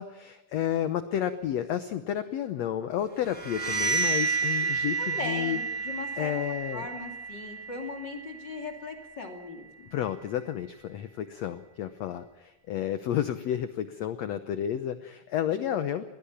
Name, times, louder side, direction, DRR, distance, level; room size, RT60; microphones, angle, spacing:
voice 1, 0.0-5.6 6.2-6.8 9.9-16.0, left 10 dB, 85° left, 11 dB, 1.4 m, -31 dB
sound 1, 3.2-8.9, right 5 dB, ahead, 3.8 m, -31 dB
voice 2, 5.0-6.3 6.7-9.9 15.5-15.8, left 3 dB, 30° left, 4 dB, 2.9 m, -39 dB
22.0 x 17.0 x 7.1 m, 1.0 s
omnidirectional pair, 4.3 m